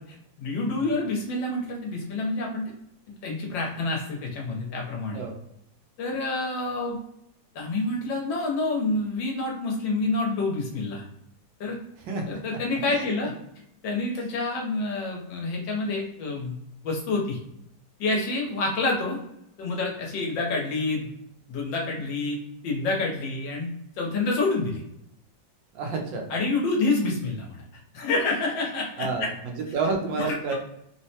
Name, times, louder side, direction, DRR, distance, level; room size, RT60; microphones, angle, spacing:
voice 1, 0.4-2.6 3.2-5.2 6.0-7.0 7.5-11.0 11.6-11.8 12.3-13.3 13.8-16.6 16.8-17.4 18.0-19.2 19.6-21.1 21.5-22.4 22.6-23.7 24.0-24.8 26.3-27.6 27.9-29.3 30.2-30.5, left 3 dB, 75° left, -1 dB, 1.5 m, -28 dB
voice 2, 12.1-12.4 12.9-13.0 25.7-26.2 29.0-30.5, right 4 dB, 80° right, 2 dB, 1.4 m, -29 dB
3.7 x 2.1 x 2.7 m, 0.80 s
omnidirectional pair, 2.0 m